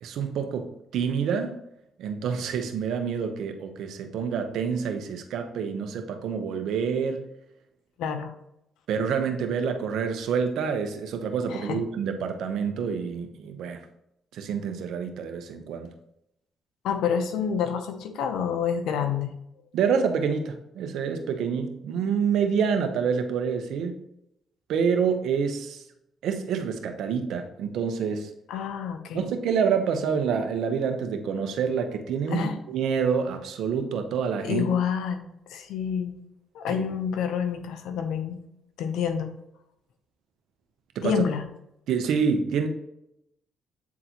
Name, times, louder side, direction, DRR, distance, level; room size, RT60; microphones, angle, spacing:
voice 1, 0.0-1.6 2.0-7.2 8.9-13.8 14.3-15.9 19.7-24.0 24.7-25.8 26.2-28.3 29.1-34.6 36.7-36.8 40.9-41.2 41.9-42.7, right 6 dB, 80° right, 6 dB, 0.8 m, -27 dB
voice 2, 8.0-8.3 11.5-11.8 16.8-19.3 28.5-29.2 32.3-32.6 34.4-35.2 35.5-36.2 36.5-38.4 38.8-39.3 41.0-41.4, left 7 dB, 85° left, 7 dB, 0.8 m, -28 dB
8.4 x 3.9 x 2.9 m, 0.80 s
cardioid pair, 90°, 0 cm